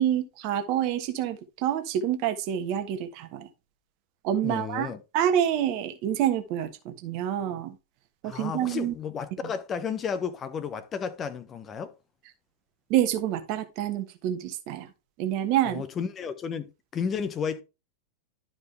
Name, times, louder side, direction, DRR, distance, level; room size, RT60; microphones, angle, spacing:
voice 1, 0.0-3.5 4.2-7.7 8.2-8.9 12.9-14.9 15.2-15.8, right 10 dB, 45° right, 1.2 m, -27 dB
voice 2, 4.4-5.0 8.2-11.9 15.6-17.6, left 6 dB, 25° left, 0.9 m, -32 dB
12.0 x 4.9 x 3.3 m
figure-of-eight pair, 90°, 0 cm